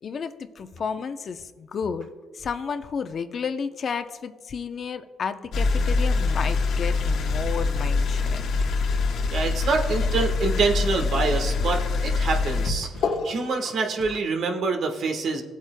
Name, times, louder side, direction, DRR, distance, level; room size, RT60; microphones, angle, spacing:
voice 1, 0.0-2.1 2.3-8.4, left 6 dB, 55° left, 9 dB, 0.7 m, -32 dB
sound 1, 5.5-14.2, left 4 dB, 75° left, 1.2 m, -25 dB
voice 2, 9.3-15.4, right 4 dB, 70° right, 4 dB, 1.3 m, -26 dB
17.5 x 8.3 x 2.2 m, 1.3 s
cardioid pair, 90°, 0 cm